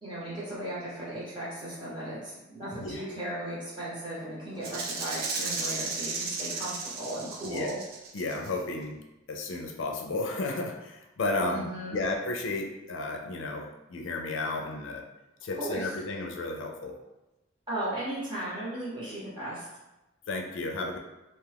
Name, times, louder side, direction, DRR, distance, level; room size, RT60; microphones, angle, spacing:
voice 1, 0.0-7.8 11.4-12.0 15.6-15.9 17.7-19.7, right 1 dB, 25° right, -8 dB, 1.1 m, -36 dB
Rattle (instrument), 4.6-8.5, right 4 dB, 50° right, 0.4 m, -34 dB
voice 2, 8.1-9.0 9.3-15.0 15.4-17.0 20.3-21.0, left 2 dB, 85° left, 2 dB, 0.4 m, -33 dB
2.6 x 2.4 x 3.3 m, 0.99 s
head